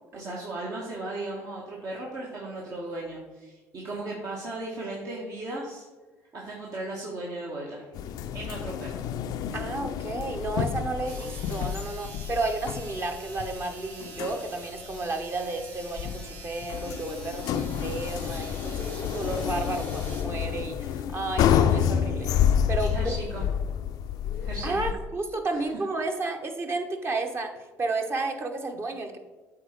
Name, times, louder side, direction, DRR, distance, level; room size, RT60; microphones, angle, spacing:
voice 1, 0.1-5.9 6.3-7.9 8.3-9.0 22.8-23.5 24.3-24.9 25.5-25.6 26.0-26.1, right 2 dB, 55° right, -4 dB, 1.5 m, -36 dB
sound 1, 7.9-24.9, left 9 dB, 65° left, 0.4 m, -29 dB
voice 2, 9.5-22.9 24.6-29.2, right 3 dB, 35° right, 5 dB, 1.2 m, -32 dB
sound 2, 11.0-20.2, right 3 dB, 70° right, 1.4 m, -45 dB
7.9 x 3.8 x 4.6 m, 1.3 s
hypercardioid pair, 60°, 7 cm